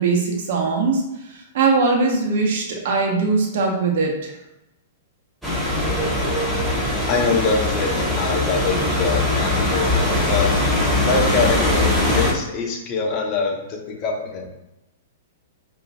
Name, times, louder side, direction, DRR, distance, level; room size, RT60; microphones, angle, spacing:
voice 1, 0.0-4.4, right 4 dB, 60° right, 1 dB, 1.0 m, -21 dB
sound 1, 5.4-12.3, left 1 dB, 5° right, 1.3 m, -21 dB
voice 2, 7.1-10.5 11.0-14.5, left 4 dB, 35° left, 0 dB, 1.0 m, -24 dB
4.9 x 2.9 x 2.4 m, 0.92 s
hypercardioid pair, 110°, 0 cm